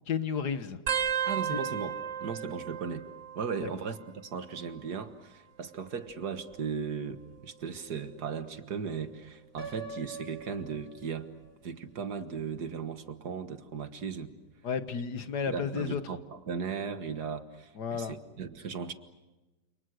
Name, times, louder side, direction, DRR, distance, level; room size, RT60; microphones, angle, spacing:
voice 1, 0.1-0.8 1.5-1.6 3.6-3.7 14.6-16.1 17.8-18.2, left 6 dB, 70° left, 10 dB, 1.9 m, -32 dB
sound 1, 0.9-4.0 4.3-4.9 5.9-7.4 8.0-8.4 9.6-9.9 11.4-11.5, right 8 dB, 50° right, 1.4 m, -36 dB
voice 2, 1.3-2.0 2.2-3.0 3.4-11.3 11.6-14.3 15.5-18.9, right 6 dB, 70° right, 9 dB, 2.0 m, -37 dB
Piano, 9.6-11.5, right 4 dB, 25° right, 3.5 m, -44 dB
29.5 x 28.0 x 6.5 m, 1.1 s
omnidirectional pair, 1.8 m